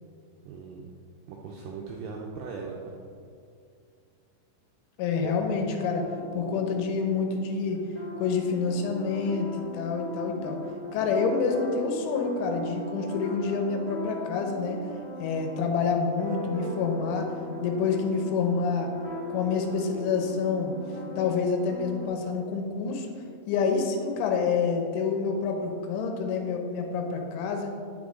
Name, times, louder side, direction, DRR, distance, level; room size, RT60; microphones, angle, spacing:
voice 1, 0.5-0.8 1.3-3.0 5.2-5.3, right 5 dB, 85° right, -1 dB, 2.4 m, -38 dB
voice 2, 5.0-6.0 6.3-7.8 8.2-10.6 10.9-14.8 15.2-17.3 17.6-18.9 19.3-20.7 21.2-23.1 23.5-27.7, left 5 dB, 85° left, 3 dB, 3.2 m, -27 dB
sound 1, 5.4-22.1, equal, 50° left, 1.1 m, -39 dB
10.0 x 6.3 x 3.6 m, 2.3 s
omnidirectional pair, 5.6 m